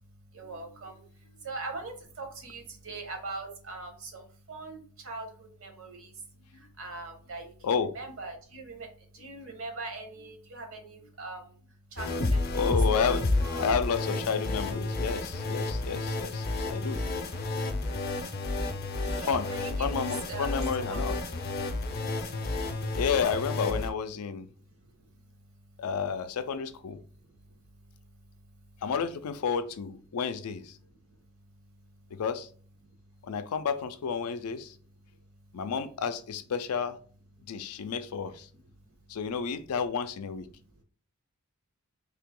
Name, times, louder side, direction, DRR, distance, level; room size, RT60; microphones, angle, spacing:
voice 1, 0.0-13.7 16.6-16.9 17.5-17.7 18.3-23.0 24.2-25.9 27.0-28.8 30.8-32.2 32.8-33.3 34.7-35.6 37.4-37.9 38.5-39.2 40.5-40.8, right 3 dB, 65° right, 1.0 m, -44 dB
sound 1, 12.0-23.9, left 2 dB, 45° left, 0.5 m, -31 dB
voice 2, 12.5-13.2 13.6-17.0 19.2-19.5 19.8-21.1 22.9-24.5 25.8-27.0 28.8-30.7 32.2-32.5 33.2-34.7 35.5-37.0 37.5-38.5 39.1-40.5, left 6 dB, 90° left, 0.4 m, -31 dB
3.3 x 2.9 x 3.7 m
head